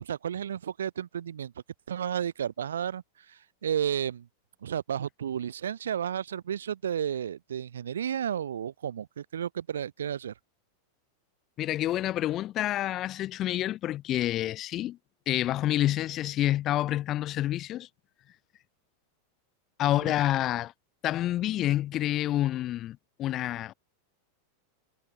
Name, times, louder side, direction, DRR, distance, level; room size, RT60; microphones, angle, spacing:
voice 1, 0.0-1.5 1.9-3.0 3.3-4.3 4.6-10.3 20.0-20.1, right 9 dB, 70° right, 1.4 m, -32 dB
voice 2, 11.6-15.0 15.3-17.9 19.8-20.7 21.0-23.7, left 13 dB, 35° left, 1.1 m, -28 dB
figure-of-eight pair, 90°, 0 cm